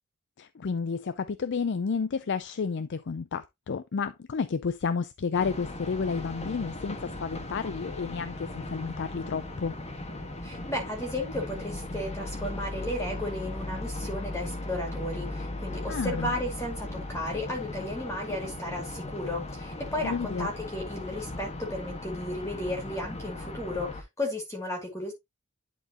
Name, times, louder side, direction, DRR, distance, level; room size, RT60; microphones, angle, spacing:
voice 1, 0.4-9.7 15.9-16.4 20.0-20.5, left 5 dB, 55° left, 0.5 m, -31 dB
sound 1, 5.3-24.0, left 2 dB, 30° left, 1.4 m, -37 dB
voice 2, 10.4-25.1, left 1 dB, 15° left, 2.3 m, -34 dB
11.0 x 4.4 x 2.8 m
head